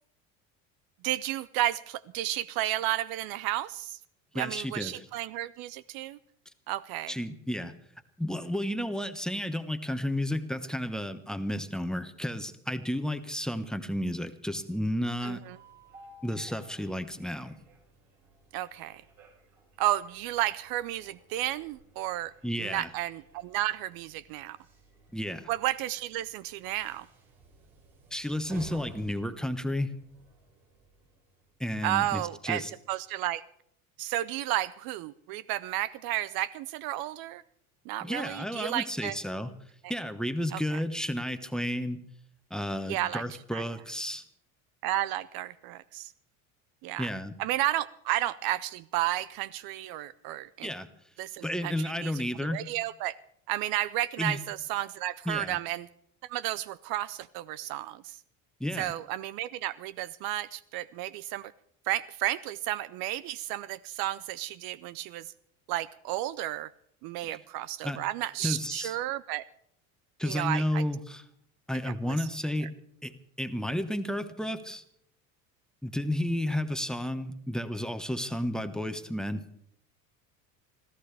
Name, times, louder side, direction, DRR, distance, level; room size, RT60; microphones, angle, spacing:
voice 1, 1.0-4.0 4.3-6.2 6.7-7.1 15.2-15.6 18.5-19.0 19.8-22.3 22.6-24.6 25.5-27.1 31.8-32.6 32.9-33.4 34.0-37.4 37.9-39.2 40.5-40.6 42.9-43.2 43.5-43.6 44.8-46.1 46.8-47.1 47.4-50.7 51.2-52.1 52.4-53.2 53.5-55.9 56.3-58.2 58.8-61.5 61.9-65.3 65.7-66.7 67.0-69.4 70.2-70.8, right 14 dB, 60° right, 17 dB, 0.6 m, -32 dB
voice 2, 4.3-5.1 7.1-7.7 8.2-15.4 16.2-17.6 22.4-22.9 25.1-25.5 28.1-29.9 31.6-32.7 38.0-39.5 39.9-42.0 42.5-44.2 47.0-47.4 50.6-50.9 51.4-52.6 54.2-54.4 55.2-55.6 58.6-58.9 67.3-67.4 67.8-68.0 68.4-69.0 70.2-71.2 71.7-72.7 73.0-73.1 73.4-74.8 75.8-79.4, left 1 dB, ahead, 11 dB, 1.1 m, -32 dB
Train, 14.5-31.7, right 3 dB, 80° right, 5.9 m, -55 dB
25.5 x 14.5 x 3.4 m, 0.69 s
hypercardioid pair, 85°, 42 cm